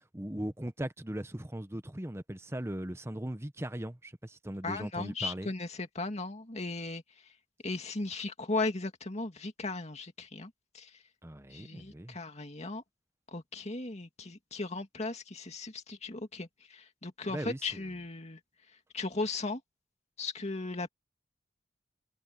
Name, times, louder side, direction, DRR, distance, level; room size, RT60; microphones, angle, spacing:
voice 1, 0.1-5.5 11.2-12.2 17.3-17.8, right 1 dB, 15° right, 1.0 m, -39 dB
voice 2, 4.6-7.0 7.6-10.9 11.5-12.8 13.3-18.4 18.9-19.6 20.2-20.9, left 3 dB, 35° left, 2.4 m, -37 dB
head